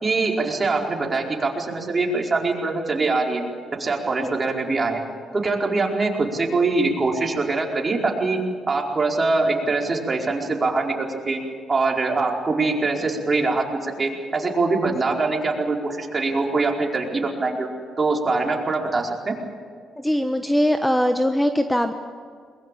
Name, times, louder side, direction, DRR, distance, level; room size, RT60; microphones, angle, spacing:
voice 1, 0.0-3.4 3.8-5.0 5.3-8.4 8.7-11.4 11.7-17.7 18.0-19.3, right 3 dB, 30° right, 1 dB, 4.7 m, -23 dB
voice 2, 20.0-21.9, equal, 5° left, 7 dB, 1.2 m, -21 dB
22.0 x 21.5 x 8.6 m, 2.2 s
cardioid pair, 90°, 0 cm